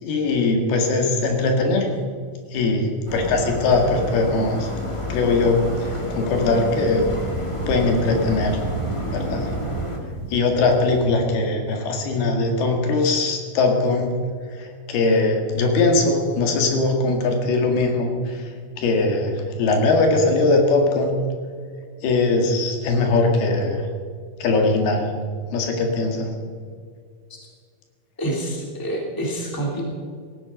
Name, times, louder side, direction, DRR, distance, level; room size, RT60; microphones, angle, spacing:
voice 1, 0.0-2.0 2.5-4.7 5.1-7.0 7.7-8.6 9.1-9.5 10.3-14.1 14.5-21.2 22.0-23.9 24.4-25.1 25.5-26.3, left 3 dB, 80° left, 3 dB, 3.9 m, -21 dB
sound 1, 3.1-10.0, left 1 dB, 40° left, 0.4 m, -30 dB
sound 2, 4.6-11.3, right 3 dB, 65° right, 2.2 m, -36 dB
voice 2, 28.2-29.8, right 1 dB, 5° left, -2 dB, 2.9 m, -27 dB
17.5 x 14.5 x 5.2 m, 2.1 s
omnidirectional pair, 4.4 m